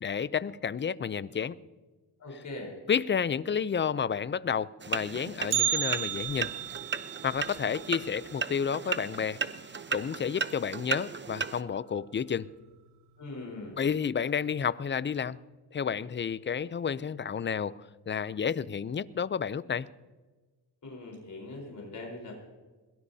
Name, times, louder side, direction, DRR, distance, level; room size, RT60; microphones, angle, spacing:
voice 1, 0.0-1.6 2.9-6.5 7.2-9.4 9.9-12.5 13.8-15.4 15.7-17.8 18.1-19.9, left 7 dB, 30° left, 17 dB, 0.5 m, -30 dB
voice 2, 2.2-2.8 13.2-13.8 20.8-22.3, left 2 dB, 45° left, 0 dB, 4.3 m, -41 dB
sound 1, 4.8-11.6, right 5 dB, 25° right, 0.8 m, -36 dB
Bell, 5.5-9.6 9.9-10.0 10.5-10.6 11.4-11.5 12.2-12.5 12.9-13.0, right 11 dB, 75° right, 2.1 m, -34 dB
21.5 x 18.0 x 2.8 m, 1.3 s
cardioid pair, 85°, 42 cm